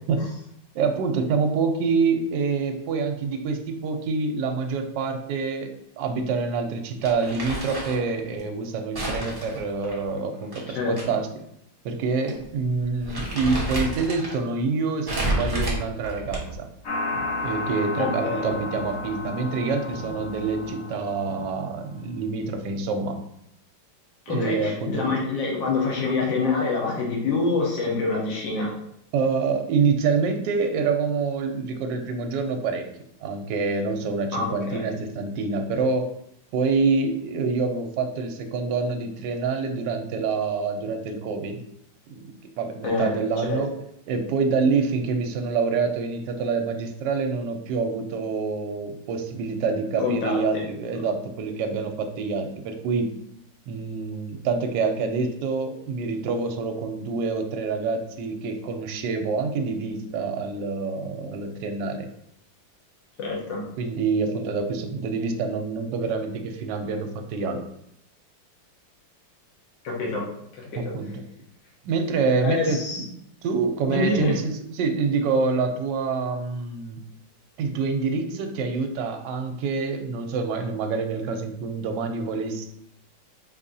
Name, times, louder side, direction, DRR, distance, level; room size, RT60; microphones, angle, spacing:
voice 1, 0.7-11.3 11.8-16.7 17.4-23.2 24.3-25.1 29.1-32.9 33.2-36.1 36.5-41.6 42.1-43.7 44.1-53.1 53.7-62.1 63.8-67.6 70.8-71.2 71.8-73.1 73.4-77.0 77.6-82.7, right 4 dB, 75° right, 5 dB, 1.2 m, -26 dB
Crumpling crinkling, 7.0-8.0 8.9-11.0 11.4-11.5 12.3-12.5 12.8-14.4 15.1-16.7, right 1 dB, 35° right, 0.4 m, -30 dB
sound 1, 16.8-22.1, left 2 dB, 55° left, 1.2 m, -32 dB
voice 2, 18.0-18.5 24.3-28.7 34.3-34.9 42.8-43.1 43.5-43.6 50.0-50.4 63.2-63.6 69.8-70.2 70.6-70.9 72.4-73.0 73.9-74.3, left 4 dB, 80° left, -2 dB, 1.7 m, -26 dB
4.9 x 2.7 x 2.6 m, 0.75 s
omnidirectional pair, 2.0 m